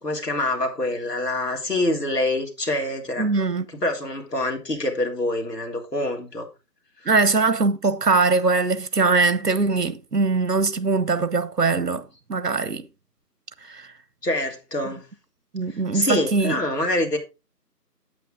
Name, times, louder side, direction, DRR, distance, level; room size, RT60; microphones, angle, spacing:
voice 1, 0.0-3.3 3.7-6.5 14.2-15.0 15.9-17.2, left 1 dB, 75° left, 3.5 m, -25 dB
voice 2, 3.2-3.6 7.0-12.0 12.3-12.8 13.6-13.9 15.5-16.6, right 3 dB, 75° right, 1.3 m, -21 dB
9.0 x 8.6 x 3.8 m
figure-of-eight pair, 165°, 49 cm